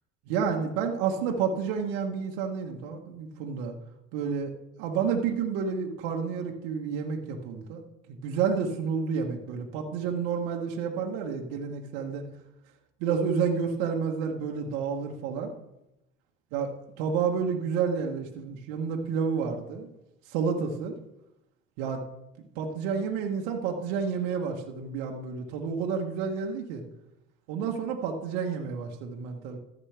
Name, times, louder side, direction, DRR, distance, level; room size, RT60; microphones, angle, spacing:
voice 1, 0.3-3.7 4.1-4.5 4.8-7.8 8.2-12.2 13.0-15.5 16.5-16.7 17.0-19.9 20.3-20.9 21.8-22.0 22.5-26.8 27.5-29.6, right 6 dB, 70° right, 1 dB, 1.4 m, -30 dB
14.0 x 7.4 x 3.4 m, 0.87 s
hypercardioid pair, 60°, 38 cm